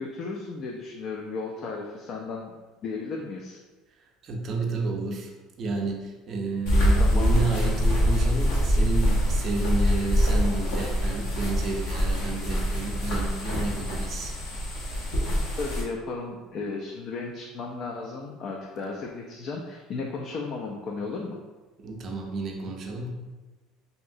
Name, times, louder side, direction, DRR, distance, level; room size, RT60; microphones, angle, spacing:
voice 1, 0.0-2.5 2.8-3.6 7.0-7.5 15.6-21.4, left 4 dB, 50° left, 0 dB, 0.3 m, -34 dB
voice 2, 4.2-5.3 5.6-14.3 21.8-23.1, right 3 dB, 40° right, 1 dB, 0.5 m, -31 dB
sound 1, 6.7-15.8, equal, 85° left, 0.9 m, -24 dB
3.0 x 2.8 x 2.6 m, 1.2 s
cardioid pair, 130°, 0 cm